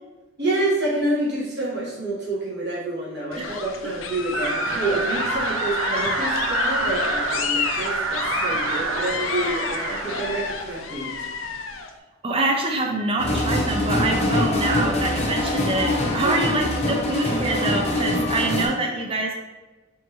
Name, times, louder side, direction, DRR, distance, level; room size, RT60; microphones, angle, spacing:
voice 1, 0.4-11.3 16.2-16.4, right 2 dB, 55° right, -7 dB, 1.4 m, -28 dB
sound 1, 3.3-11.9, left 5 dB, 70° left, 0.4 m, -29 dB
sound 2, 4.3-10.5, right 4 dB, 85° right, 0.5 m, -28 dB
voice 2, 12.2-19.3, right 2 dB, 25° right, 1 dB, 0.4 m, -25 dB
sound 3, 13.2-18.7, left 1 dB, 30° left, 0.7 m, -23 dB
4.5 x 3.3 x 2.9 m, 1.2 s
head